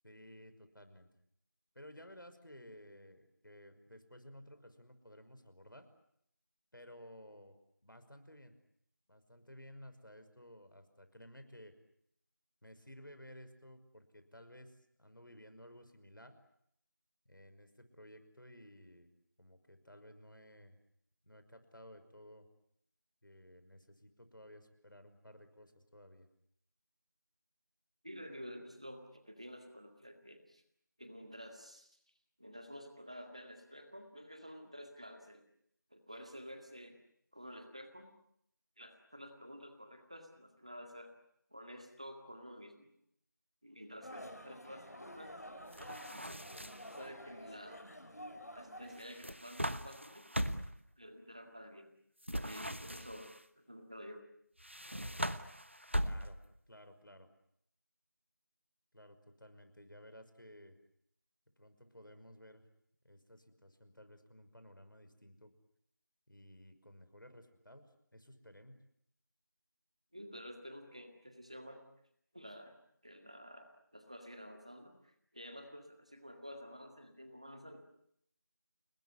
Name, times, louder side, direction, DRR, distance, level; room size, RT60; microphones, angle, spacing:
voice 1, 0.0-1.1 1.7-5.9 6.7-8.5 9.1-11.7 12.6-16.4 17.3-19.1 19.4-20.8 21.2-22.5 23.2-26.3 56.0-56.4 56.7-57.3 58.9-60.8 61.6-62.6 63.0-65.5 66.3-68.8, equal, 80° left, 9 dB, 5.6 m, -56 dB
voice 2, 28.0-30.6 31.0-32.0 32.4-35.4 35.9-37.0 37.3-38.1 38.8-41.1 41.5-42.9 43.6-45.4 47.0-47.9 48.5-50.3 51.0-51.9 52.4-53.3 53.6-54.2 70.1-71.8 72.3-72.7 73.0-77.8, equal, 20° right, 5 dB, 2.0 m, -51 dB
sound 1, 44.0-49.0, equal, 55° left, 5.4 m, -50 dB
sound 2, 45.7-47.0 49.0-50.8 52.2-53.4 54.6-56.6, equal, 35° right, 1.0 m, -39 dB
30.0 x 20.0 x 9.8 m, 0.73 s
figure-of-eight pair, 180°, 11 cm